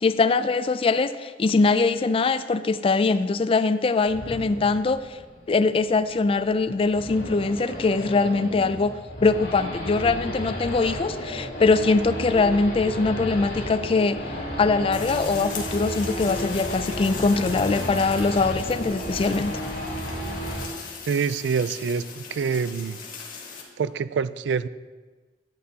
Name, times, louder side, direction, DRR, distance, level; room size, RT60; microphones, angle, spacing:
voice 1, 0.0-5.1 5.5-14.2 14.6-19.6, left 3 dB, 30° left, 13 dB, 0.3 m, -22 dB
Race car auto racing / Idling / Accelerating revving vroom, 4.1-20.7, equal, 65° left, 3.1 m, -33 dB
sound 1, 14.9-23.6, left 5 dB, 50° left, 1.7 m, -40 dB
voice 2, 21.1-23.0 23.8-24.7, right 6 dB, 75° right, 16 dB, 0.4 m, -26 dB
12.0 x 9.6 x 2.8 m, 1.3 s
head